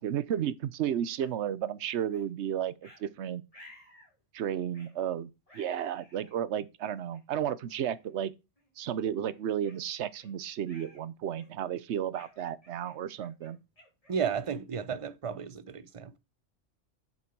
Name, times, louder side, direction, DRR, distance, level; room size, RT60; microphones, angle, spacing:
voice 1, 0.0-3.4 4.3-8.3 8.8-13.6, right 10 dB, 65° right, 1.0 m, -33 dB
sound 1, 1.2-1.3 2.1-2.3 2.8-3.0 3.5-4.1 4.7-5.0 5.5-6.4 7.1-7.2 7.9-8.1 8.6-8.7 9.2-10.3 10.7-11.0 11.4-11.7 12.1-14.7, left 1 dB, 25° left, 3.5 m, -57 dB
voice 2, 14.1-16.2, right 7 dB, 35° right, 0.6 m, -33 dB
8.6 x 6.7 x 4.6 m
omnidirectional pair, 1.3 m